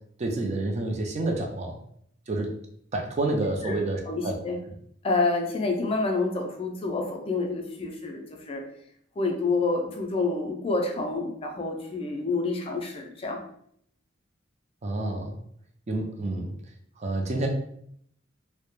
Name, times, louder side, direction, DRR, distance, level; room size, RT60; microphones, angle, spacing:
voice 1, 0.2-1.8 2.3-2.5 2.9-4.3 14.8-15.4 15.9-16.5 17.0-17.5, right 2 dB, 35° right, 2 dB, 0.4 m, -29 dB
voice 2, 4.1-4.6 5.0-8.6 9.2-13.4, left 3 dB, 30° left, 2 dB, 0.4 m, -28 dB
2.2 x 2.1 x 3.0 m, 0.68 s
head